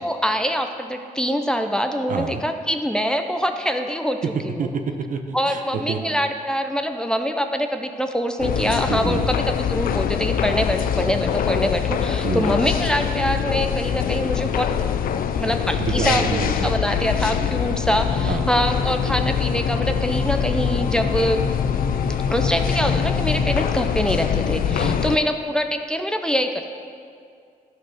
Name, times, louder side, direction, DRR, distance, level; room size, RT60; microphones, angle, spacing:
voice 1, 0.0-4.7 5.3-14.7 15.4-21.4 22.3-26.6, equal, 5° left, 5 dB, 0.6 m, -24 dB
voice 2, 2.1-2.4 4.2-5.6 5.9-6.0 8.9-9.3 12.2-12.6 15.8-16.7 18.3-18.5 24.7-25.1, right 5 dB, 65° right, 6 dB, 0.9 m, -27 dB
sound 1, 8.4-25.2, left 9 dB, 75° left, 0.5 m, -24 dB
sound 2, 18.1-23.6, left 3 dB, 55° left, 0.9 m, -29 dB
12.5 x 5.7 x 5.9 m, 2.3 s
cardioid pair, 115°, 15 cm